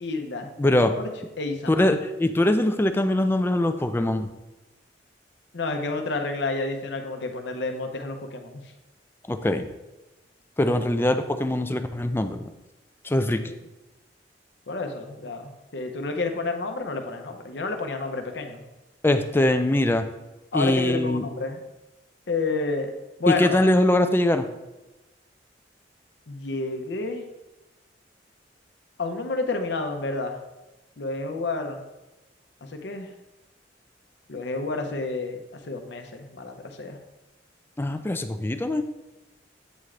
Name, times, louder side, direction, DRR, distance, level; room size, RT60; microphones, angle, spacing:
voice 1, 0.0-0.5 0.8-1.1 1.4-1.9 5.5-8.6 10.6-10.8 13.4-13.5 14.7-18.6 20.5-21.6 22.3-22.9 23.2-23.6 26.3-27.3 29.0-30.4 31.0-31.8 32.7-33.1 34.3-37.0, left 3 dB, 75° left, 5 dB, 0.7 m, -30 dB
voice 2, 0.6-0.9 1.7-4.3 9.3-9.7 10.6-12.5 13.0-13.4 19.0-20.0 20.5-21.2 23.3-24.5 37.8-38.8, left 1 dB, 15° left, 8 dB, 0.4 m, -22 dB
8.2 x 3.7 x 3.2 m, 1.0 s
head